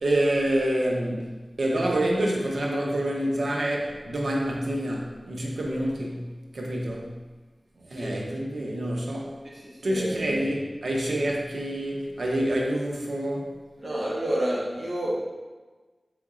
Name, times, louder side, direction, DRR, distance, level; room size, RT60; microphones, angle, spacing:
voice 1, 0.0-7.2 7.8-9.4 9.8-13.6, right 1 dB, 85° right, -1 dB, 0.7 m, -27 dB
voice 2, 9.4-10.4 13.8-15.3, right 1 dB, 55° right, -6 dB, 1.2 m, -29 dB
3.9 x 3.4 x 3.7 m, 1.3 s
wide cardioid pair, 55°, 0 cm